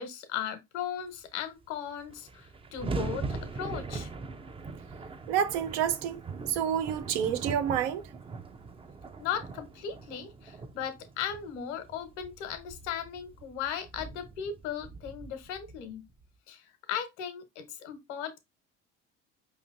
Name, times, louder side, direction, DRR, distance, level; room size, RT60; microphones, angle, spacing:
voice 1, 0.0-4.1 9.2-16.1 16.5-18.4, left 8 dB, 75° left, 1.1 m, -37 dB
sound 1, 1.6-1.7 1.9-16.3, right 4 dB, 15° right, 0.5 m, -41 dB
voice 2, 5.3-6.2 6.5-8.1, right 9 dB, 75° right, 0.7 m, -28 dB
5.0 x 3.2 x 2.5 m
hypercardioid pair, 70°, 35 cm